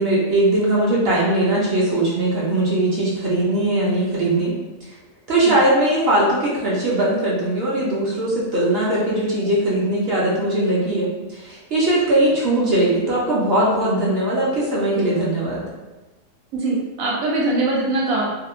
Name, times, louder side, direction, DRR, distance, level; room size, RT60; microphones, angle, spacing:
voice 1, 0.0-4.5 5.3-15.6, right 1 dB, 60° right, -6 dB, 0.7 m, -20 dB
voice 2, 16.5-18.2, right 2 dB, 85° right, -4 dB, 1.0 m, -22 dB
2.7 x 2.1 x 2.4 m, 1.1 s
omnidirectional pair, 1.4 m